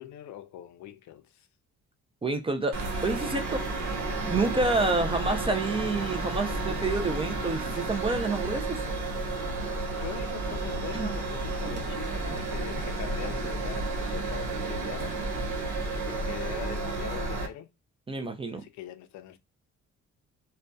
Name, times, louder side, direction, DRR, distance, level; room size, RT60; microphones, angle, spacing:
voice 1, 0.0-1.5 9.9-15.2 15.9-17.7 18.5-19.4, left 11 dB, 70° left, 0.5 m, -42 dB
voice 2, 2.2-3.6 4.2-8.8 10.9-11.1 18.1-18.7, right 3 dB, 20° right, 0.4 m, -28 dB
sound 1, 2.7-17.5, right 2 dB, 80° right, 0.8 m, -32 dB
sound 2, 7.7-8.4 10.1-15.4, right 2 dB, 35° right, 0.8 m, -48 dB
2.5 x 2.2 x 2.2 m
cardioid pair, 90°, 30 cm